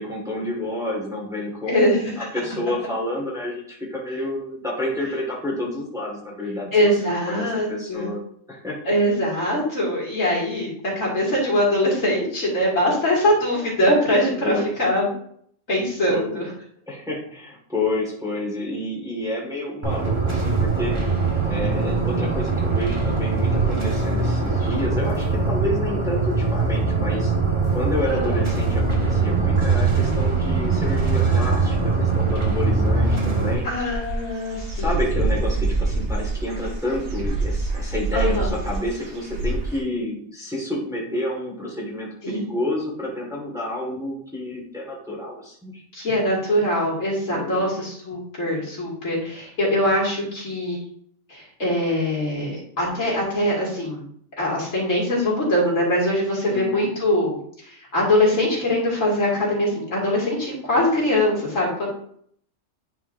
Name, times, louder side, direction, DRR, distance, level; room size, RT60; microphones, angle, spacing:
voice 1, 0.0-7.0 7.3-8.2 8.5-8.8 14.4-14.7 16.1-16.4 16.9-20.9 21.5-27.3 27.7-33.7 34.7-45.8 47.3-47.6 56.5-56.9, left 1 dB, 5° right, -4 dB, 1.7 m, -29 dB
voice 2, 1.7-2.2 6.7-8.1 8.9-15.1 15.7-16.5 28.1-28.4 33.6-34.9 38.1-38.5 42.2-42.5 45.9-50.8 51.3-54.0 54.4-61.9, left 1 dB, 80° left, -4 dB, 2.7 m, -22 dB
sound 1, 19.8-33.5, right 4 dB, 25° right, 1.3 m, -22 dB
Dog / Bird, 33.5-39.8, right 3 dB, 60° right, 1.6 m, -26 dB
9.5 x 4.8 x 2.6 m, 0.64 s
omnidirectional pair, 1.3 m